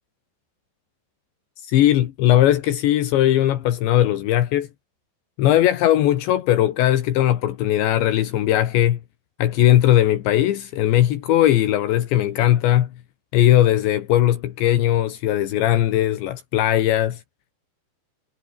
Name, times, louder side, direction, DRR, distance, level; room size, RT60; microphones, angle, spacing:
voice 1, 1.6-4.7 5.4-9.0 9.4-12.9 13.3-17.2, left 12 dB, 75° left, 3.8 m, -19 dB
omnidirectional pair, 5.3 m